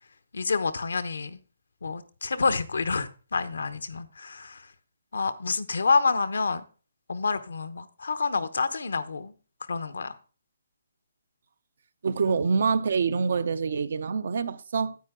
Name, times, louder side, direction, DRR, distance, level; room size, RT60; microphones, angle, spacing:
voice 1, 0.3-1.4 1.8-4.7 5.1-6.6 7.1-9.3 9.7-10.2, left 4 dB, 80° left, 0.9 m, -28 dB
voice 2, 12.0-15.0, right 5 dB, 60° right, 0.7 m, -26 dB
9.4 x 8.2 x 3.7 m
hypercardioid pair, 155°, 0 cm